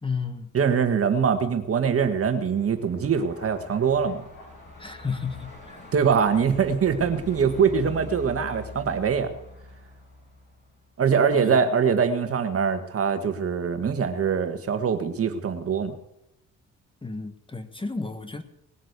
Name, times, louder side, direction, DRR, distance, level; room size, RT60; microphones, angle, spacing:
voice 1, 0.0-0.5 4.8-5.8 11.3-11.6 17.0-18.4, left 4 dB, 15° left, 10 dB, 1.4 m, -32 dB
voice 2, 0.5-4.2 5.9-9.3 11.0-15.9, right 6 dB, 50° right, 9 dB, 1.7 m, -23 dB
Truck, 1.7-10.9, left 2 dB, 35° left, 6.9 m, -44 dB
sound 1, 3.0-6.4 6.7-6.8, left 2 dB, 50° left, 6.1 m, -51 dB
19.5 x 7.5 x 8.2 m, 0.82 s
cardioid pair, 90°, 30 cm